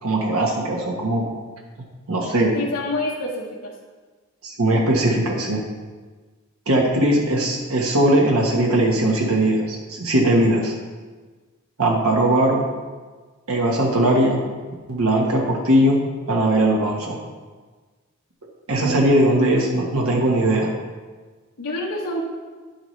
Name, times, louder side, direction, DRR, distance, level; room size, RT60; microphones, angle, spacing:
voice 1, 0.0-1.3 2.1-2.5 4.4-5.6 6.7-10.7 11.8-12.7 13.5-14.4 14.9-16.0 16.3-17.2 18.7-20.7, right 1 dB, 75° right, -1 dB, 1.3 m, -19 dB
voice 2, 2.5-3.7 18.8-19.3 21.6-22.2, left 1 dB, 80° left, -4 dB, 1.2 m, -27 dB
10.5 x 7.2 x 3.2 m, 1.4 s
head